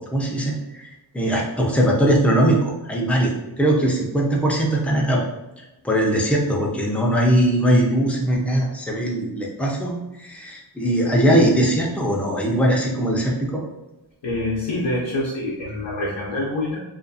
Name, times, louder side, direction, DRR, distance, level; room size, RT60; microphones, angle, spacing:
voice 1, 0.1-5.2 5.8-13.6, right 1 dB, 5° left, -2 dB, 0.6 m, -20 dB
voice 2, 14.2-16.8, left 1 dB, 70° left, -4 dB, 0.6 m, -26 dB
2.5 x 2.5 x 2.5 m, 0.99 s
cardioid pair, 50°, 45 cm